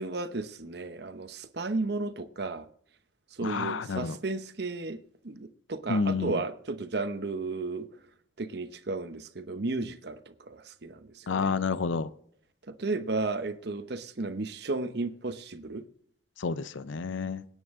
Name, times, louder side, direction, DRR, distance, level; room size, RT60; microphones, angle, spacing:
voice 1, 0.0-2.7 3.3-5.0 5.2-7.9 8.4-10.2 10.5-11.5 12.7-15.8, right 3 dB, 60° right, 0.9 m, -34 dB
voice 2, 3.4-4.2 5.9-6.4 11.3-12.1 16.4-17.4, left 4 dB, 85° left, 0.6 m, -29 dB
25.5 x 9.2 x 3.6 m
head